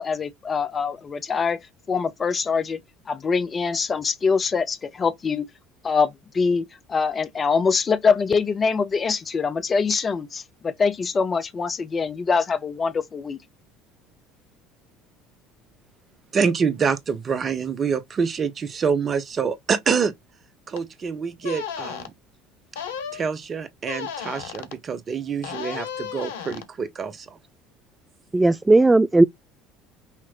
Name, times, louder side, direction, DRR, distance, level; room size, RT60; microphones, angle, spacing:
voice 1, 0.0-1.6 1.9-2.8 3.1-5.5 5.8-13.4, left 5 dB, 30° left, 0.9 m, -24 dB
voice 2, 16.3-20.1 20.7-22.1 23.1-27.4, right 6 dB, 35° right, 0.9 m, -26 dB
sound 1, 20.7-20.8 21.4-22.1 22.8-23.2 23.9-24.8 25.4-26.7, left 8 dB, 75° left, 0.8 m, -34 dB
voice 3, 28.3-29.2, right 2 dB, 15° right, 0.3 m, -16 dB
5.8 x 3.0 x 2.9 m
figure-of-eight pair, 65°, 0 cm